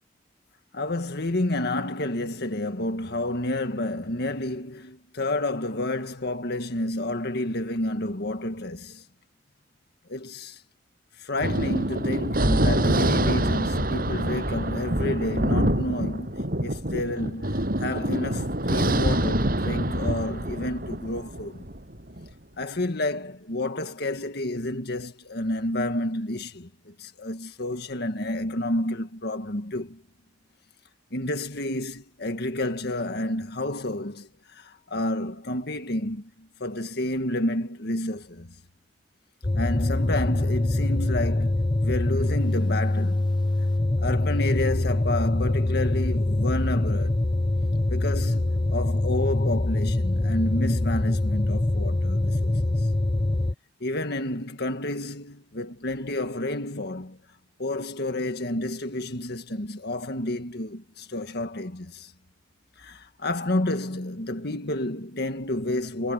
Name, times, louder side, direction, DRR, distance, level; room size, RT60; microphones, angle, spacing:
voice 1, 0.7-9.0 10.1-10.6 11.2-21.7 22.6-30.0 31.1-38.5 39.6-43.3 44.0-47.2 47.9-52.7 53.8-57.2 57.6-62.1 62.8-66.1, left 1 dB, 60° left, 1.8 m, -30 dB
Thunder, 11.4-22.3, right 1 dB, 55° right, 7.8 m, -26 dB
sound 1, 39.4-53.5, left 2 dB, 25° left, 0.7 m, -24 dB
head